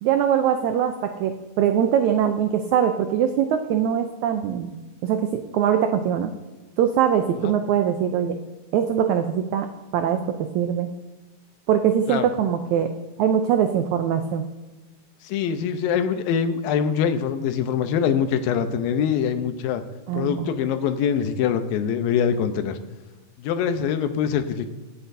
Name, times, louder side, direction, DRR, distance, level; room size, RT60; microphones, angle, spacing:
voice 1, 0.0-1.3 1.6-4.8 5.0-6.3 6.8-8.4 8.7-9.7 9.9-10.2 10.5-10.9 11.7-12.9 13.2-14.4 20.1-20.5, right 9 dB, 85° right, 7 dB, 1.6 m, -22 dB
voice 2, 15.2-19.8 20.1-22.8 23.4-24.7, left 7 dB, 85° left, 9 dB, 2.5 m, -24 dB
25.0 x 8.5 x 2.7 m, 1.2 s
omnidirectional pair, 4.1 m